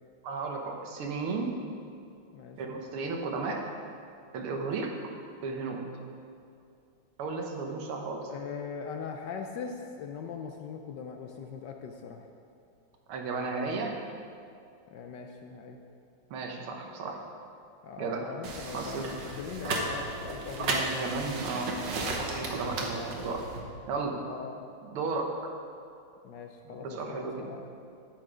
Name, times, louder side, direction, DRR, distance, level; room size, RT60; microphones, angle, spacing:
voice 1, 0.2-1.6 2.6-3.6 4.3-4.9 5.4-5.8 7.2-8.3 13.1-14.0 16.3-17.2 18.0-18.3 18.7-19.1 20.7-23.4 23.9-24.2 24.8-25.5 26.7-27.5, right 4 dB, 85° right, 2 dB, 1.9 m, -34 dB
voice 2, 2.3-2.8 4.5-4.9 8.3-12.3 14.9-15.8 17.8-21.1 24.3-24.6 26.2-27.6, left 6 dB, 70° left, 3 dB, 1.1 m, -41 dB
sound 1, 18.4-23.6, right 2 dB, 60° right, 1.6 m, -34 dB
8.8 x 8.5 x 5.0 m, 2.4 s
omnidirectional pair, 2.3 m